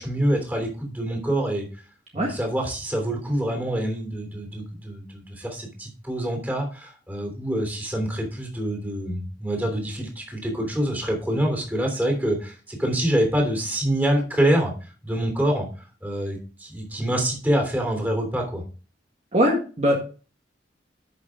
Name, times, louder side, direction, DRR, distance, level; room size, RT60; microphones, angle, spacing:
voice 1, 0.0-1.7 2.1-14.7 15.0-15.7 16.0-18.6, right 1 dB, 10° right, 2 dB, 3.2 m, -26 dB
voice 2, 19.3-20.0, equal, 40° right, -1 dB, 1.7 m, -21 dB
11.0 x 6.5 x 3.7 m, 0.36 s
head